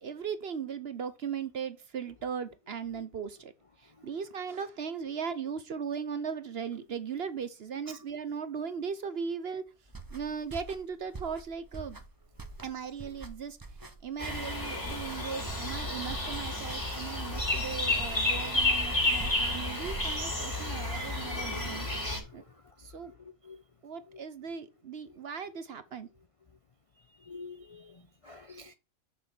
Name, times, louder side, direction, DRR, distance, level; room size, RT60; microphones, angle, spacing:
voice 1, 0.0-3.5 3.8-9.7 10.1-12.0 12.6-13.6 14.0-21.9 22.3-22.4 22.8-23.1 23.8-26.1, right 6 dB, 55° right, 0.9 m, -38 dB
sound 1, 9.9-20.5, right 3 dB, 20° right, 0.7 m, -45 dB
sound 2, 14.2-22.2, left 2 dB, 20° left, 2.7 m, -31 dB
voice 2, 21.2-22.2 23.5-23.6 27.3-27.8 28.2-28.7, left 4 dB, 45° left, 0.4 m, -46 dB
6.5 x 5.7 x 5.9 m
omnidirectional pair, 1.5 m